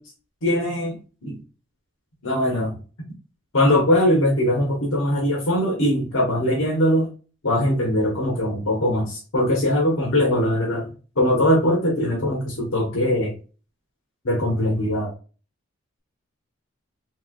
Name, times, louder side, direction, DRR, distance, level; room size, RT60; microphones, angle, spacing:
voice 1, 0.4-0.9 1.2-1.4 2.2-2.7 3.5-7.1 7.4-10.9 11.2-13.3 14.2-15.1, left 1 dB, 85° left, -3 dB, 1.1 m, -21 dB
3.2 x 3.0 x 2.3 m, 0.34 s
head